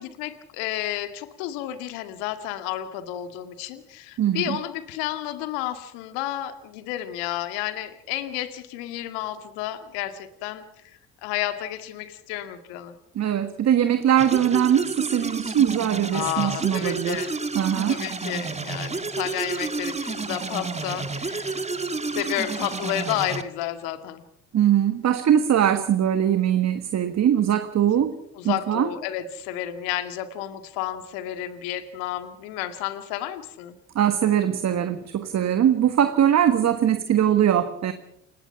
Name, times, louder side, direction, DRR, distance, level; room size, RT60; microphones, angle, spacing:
voice 1, 0.0-12.9 16.1-17.3 17.9-21.7 22.1-24.2 28.3-33.8, left 12 dB, 70° left, 9 dB, 2.2 m, -31 dB
voice 2, 4.2-4.6 13.1-17.3 17.5-18.0 24.5-28.2 28.4-28.9 33.9-37.9, right 10 dB, 45° right, 10 dB, 1.6 m, -21 dB
sound 1, 14.2-23.4, right 3 dB, 20° right, 1.8 m, -30 dB
29.0 x 18.0 x 5.8 m, 0.76 s
hypercardioid pair, 60°, 37 cm